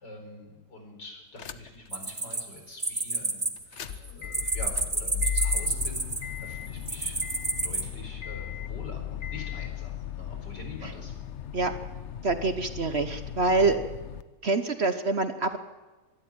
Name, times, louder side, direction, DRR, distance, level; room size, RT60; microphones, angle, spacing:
voice 1, 0.0-7.2 7.6-11.1, left 1 dB, 85° left, 3 dB, 5.2 m, -45 dB
sound 1, 1.4-1.9 2.3-2.4 3.6-14.2, left 9 dB, 55° left, 0.9 m, -36 dB
sound 2, 1.9-3.5 3.8-6.4 6.9-7.8, right 3 dB, 20° right, 1.4 m, -29 dB
voice 2, 12.2-13.8 14.4-15.6, right 3 dB, 45° right, 9 dB, 1.1 m, -25 dB
24.5 x 12.5 x 9.0 m, 1.2 s
omnidirectional pair, 1.8 m